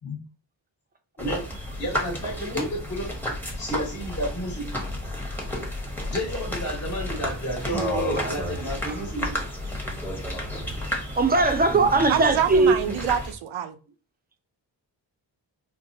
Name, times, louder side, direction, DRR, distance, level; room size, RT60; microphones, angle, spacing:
sound 1, 1.2-13.3, left 1 dB, 5° left, 0.9 m, -32 dB
voice 1, 1.8-3.1 3.6-4.8 6.1-9.5, equal, 35° left, 1.2 m, -31 dB
voice 2, 10.9-13.0, right 3 dB, 20° right, 0.5 m, -21 dB
voice 3, 12.1-13.8, right 9 dB, 80° right, 0.6 m, -26 dB
4.4 x 2.2 x 2.6 m
cardioid pair, 80°, 46 cm